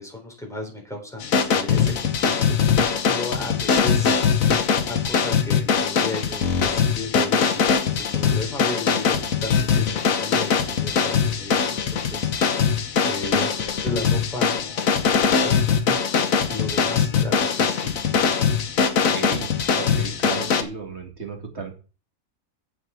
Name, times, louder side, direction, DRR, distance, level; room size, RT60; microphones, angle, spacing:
voice 1, 0.0-4.2 4.8-7.6 7.9-12.7 13.1-17.9, left 2 dB, ahead, -1 dB, 3.7 m, -35 dB
sound 1, 1.2-20.6, left 6 dB, 70° left, 1.5 m, -21 dB
voice 2, 18.9-19.5 19.8-21.7, right 5 dB, 50° right, 3 dB, 2.3 m, -34 dB
7.8 x 7.0 x 6.9 m, 0.35 s
omnidirectional pair, 1.5 m